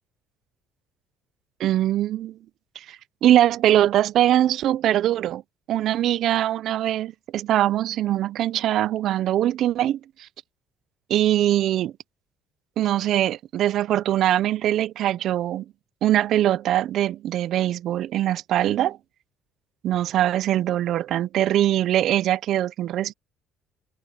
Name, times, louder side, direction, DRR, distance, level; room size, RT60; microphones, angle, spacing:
voice 1, 1.6-2.4 2.9-3.0 3.2-5.4 5.7-10.0 11.1-11.9 12.8-15.6 16.0-19.0 19.8-23.1, right 12 dB, 50° right, 0.4 m, -22 dB
cardioid pair, 170°, 0 cm